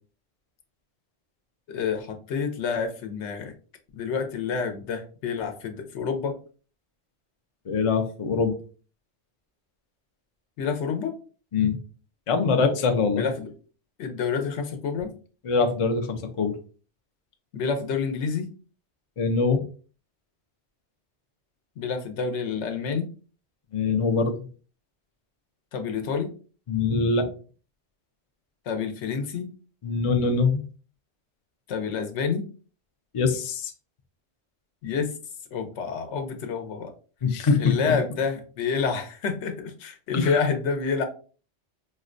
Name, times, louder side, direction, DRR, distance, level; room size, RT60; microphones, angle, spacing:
voice 1, 1.7-3.5 4.0-6.3 10.6-11.1 13.1-13.5 14.0-15.1 17.5-18.5 21.8-23.1 25.7-26.3 28.7-29.5 31.7-32.4 34.8-35.1 35.5-36.9 37.6-41.0, left 5 dB, 80° left, 6 dB, 0.9 m, -28 dB
voice 2, 7.7-8.6 11.5-11.8 12.3-13.3 15.4-16.5 19.2-19.6 23.7-24.4 26.7-27.3 29.8-30.6 33.1-33.7 37.2-37.7 40.1-40.3, left 4 dB, 55° left, 4 dB, 0.3 m, -23 dB
4.2 x 2.1 x 2.5 m, 0.38 s
omnidirectional pair, 1.2 m